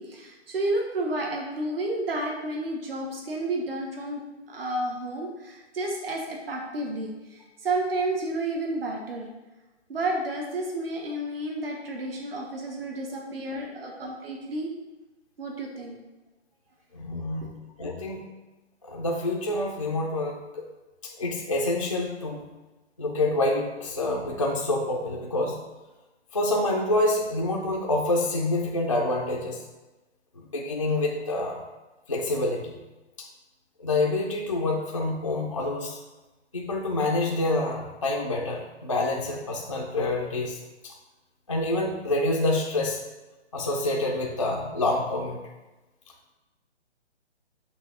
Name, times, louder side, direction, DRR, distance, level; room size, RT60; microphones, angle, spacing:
voice 1, 0.0-4.2 4.5-9.3 9.9-14.7 15.4-16.0 17.1-17.5, right 2 dB, 55° right, 0 dB, 1.2 m, -31 dB
voice 2, 16.9-17.5 17.8-18.2 18.8-20.6 21.0-22.4 23.0-25.6 26.3-29.6 30.4-31.6 32.1-32.7 33.2-33.3 33.8-36.0 36.5-40.6 40.8-40.9 41.5-43.0 43.5-45.4, left 2 dB, 30° left, -1 dB, 0.4 m, -27 dB
6.2 x 2.8 x 5.5 m, 1.1 s
hypercardioid pair, 170°, 34 cm